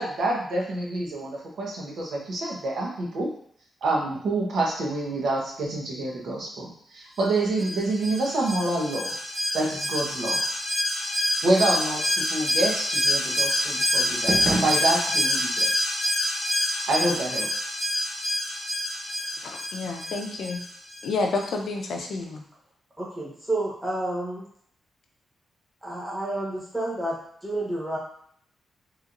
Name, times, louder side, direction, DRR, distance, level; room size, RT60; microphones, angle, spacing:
voice 1, 0.0-3.3 3.8-9.1 9.5-10.4 11.4-15.9 16.7-17.5, right 2 dB, 75° right, -2 dB, 0.9 m, -27 dB
Alarm, 7.6-21.1 21.4-21.5, left 1 dB, 35° left, 1.0 m, -27 dB
sound 1, 14.1-15.5, right 2 dB, 35° right, 0.5 m, -30 dB
voice 2, 19.4-20.6 21.0-22.4, left 3 dB, 75° left, 3 dB, 0.5 m, -29 dB
voice 3, 23.0-24.5 25.8-28.0, right 1 dB, 5° right, -6 dB, 0.9 m, -30 dB
3.0 x 2.9 x 2.5 m, 0.63 s
cardioid pair, 100°, 0 cm